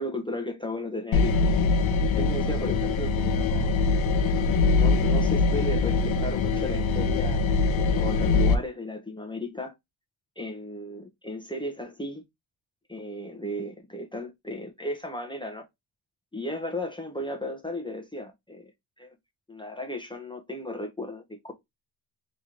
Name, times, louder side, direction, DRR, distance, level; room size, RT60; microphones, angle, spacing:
voice 1, 0.0-1.6 2.1-3.9 4.8-7.4 7.7-9.7 10.4-12.2 12.9-15.7 16.3-18.7 19.0-19.1 19.5-21.5, left 1 dB, 10° left, 0.8 m, -35 dB
sound 1, 1.1-8.5, left 4 dB, 65° left, 0.9 m, -23 dB
3.2 x 3.0 x 3.7 m
cardioid pair, 105°, 50 cm